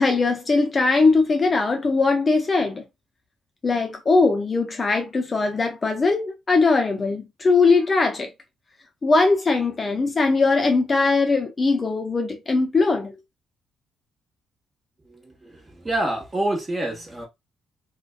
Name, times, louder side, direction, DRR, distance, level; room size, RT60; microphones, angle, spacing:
voice 1, 0.0-2.8 3.6-8.3 9.0-13.1, left 3 dB, 35° left, 0.6 m, -20 dB
voice 2, 15.0-17.2, right 1 dB, 20° right, 1.1 m, -27 dB
2.5 x 2.2 x 2.3 m
cardioid pair, 90°, 0 cm